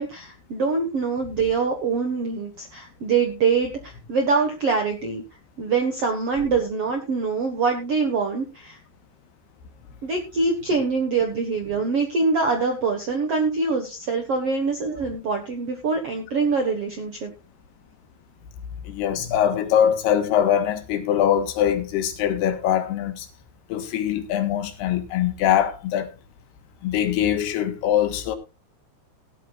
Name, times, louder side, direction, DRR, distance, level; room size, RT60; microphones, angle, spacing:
voice 1, 0.0-5.2 5.6-8.8 10.0-17.3, right 4 dB, 65° right, 1.4 m, -24 dB
voice 2, 18.8-23.3 23.7-26.1 26.8-28.4, left 10 dB, 70° left, 3.4 m, -22 dB
18.0 x 11.0 x 2.4 m
omnidirectional pair, 5.0 m